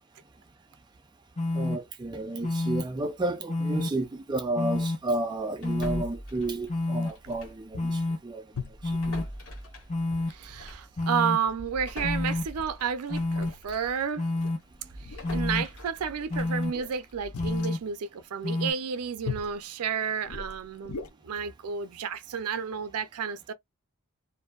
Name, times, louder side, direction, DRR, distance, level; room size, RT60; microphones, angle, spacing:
sound 1, 1.4-1.8 2.4-2.8 3.5-3.9 4.5-5.0 5.6-6.0 6.7-7.1 7.8-8.2 8.8-9.2 9.9-10.3 11.0-11.4 12.0-12.4 13.1-13.5 14.2-14.6 15.2-15.6 16.3-16.7 17.4-17.8 18.4-18.7, left 2 dB, 30° left, 0.7 m, -28 dB
voice 1, 1.5-8.4 8.8-9.2, right 2 dB, 20° right, 0.3 m, -32 dB
sound 2, 5.6-7.7 7.9-8.1 8.7-14.0 14.4-17.5, equal, 65° left, 1.3 m, -43 dB
sound 3, 7.3-7.4 7.7-8.0 8.5-9.0 10.1-10.6 11.0-11.2 11.5-11.6 12.0-12.8 13.3-13.6 14.3-14.5 15.0-15.6 16.6-17.7 19.2-19.6 20.2-21.1, left 5 dB, 85° left, 0.6 m, -40 dB
voice 2, 10.3-14.3 15.0-23.5, right 7 dB, 85° right, 0.4 m, -31 dB
2.5 x 2.5 x 2.3 m
head